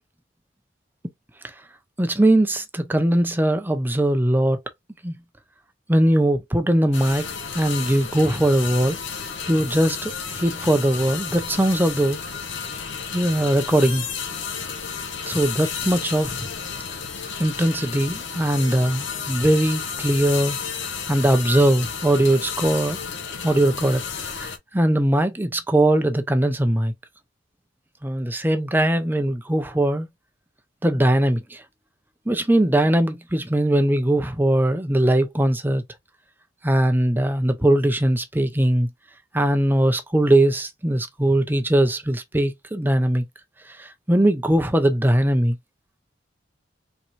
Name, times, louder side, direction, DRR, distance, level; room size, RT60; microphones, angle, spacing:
voice 1, 2.0-4.6 5.0-5.2 5.9-7.3 7.5-9.0 9.5-12.2 13.1-14.0 15.3-16.5 17.4-23.0 23.4-26.9 28.0-30.1 30.8-31.6 32.3-35.8 36.6-38.9 39.3-43.2 43.8-45.6, right 1 dB, 10° right, 0.7 m, -20 dB
sound 1, 6.9-24.6, left 6 dB, 85° left, 1.0 m, -32 dB
4.5 x 3.6 x 2.7 m
head